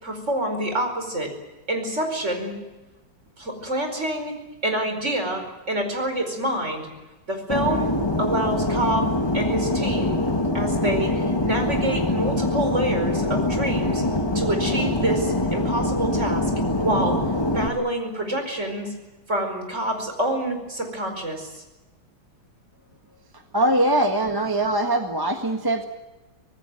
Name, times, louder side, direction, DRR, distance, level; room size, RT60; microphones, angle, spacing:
voice 1, 0.0-1.3 1.7-2.5 3.4-6.9 7.3-7.9 8.2-10.2 10.5-14.0 14.3-16.5 16.8-17.2 17.5-18.9 19.3-21.6 23.6-23.7, right 1 dB, 35° right, 5 dB, 5.2 m, -27 dB
Fixed-wing aircraft airplane, 7.5-17.7, left 1 dB, 15° left, 1.5 m, -24 dB
voice 2, 23.5-25.9, right 1 dB, 10° right, 5 dB, 1.3 m, -22 dB
25.0 x 18.5 x 9.1 m, 1.1 s
omnidirectional pair, 2.3 m